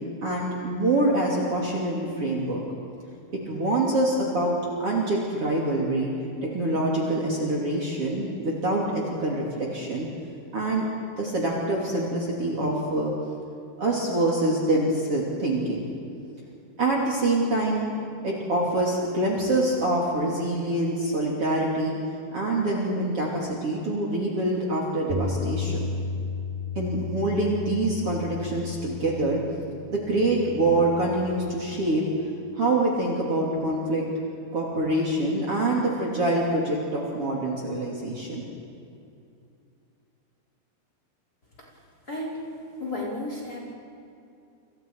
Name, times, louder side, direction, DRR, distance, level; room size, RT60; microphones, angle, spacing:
voice 1, 0.2-2.6 3.3-6.1 6.5-10.1 10.5-10.8 11.2-13.1 13.8-15.9 16.8-17.8 18.2-21.9 22.3-25.8 26.8-29.4 29.9-32.0 32.5-34.0 34.5-38.5, right 2 dB, 40° right, -3 dB, 3.5 m, -25 dB
Bass guitar, 25.1-31.4, left 4 dB, 65° right, 4.6 m, -34 dB
voice 2, 42.1-42.4 42.8-43.7, left 1 dB, 25° left, -3 dB, 4.2 m, -33 dB
29.0 x 28.0 x 4.8 m, 2.5 s
omnidirectional pair, 4.6 m